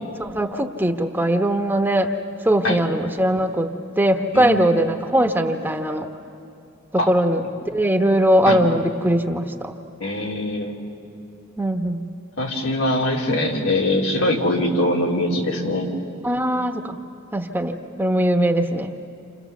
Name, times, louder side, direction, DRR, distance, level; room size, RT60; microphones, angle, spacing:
voice 1, 0.2-2.1 2.4-3.7 4.0-6.1 7.1-9.7 11.6-12.0 16.2-16.9 17.3-18.9, right 1 dB, 10° right, 4 dB, 1.1 m, -20 dB
voice 2, 10.0-10.7 12.4-15.9, left 1 dB, 85° left, -1 dB, 3.6 m, -22 dB
29.5 x 27.5 x 7.2 m, 2.7 s
head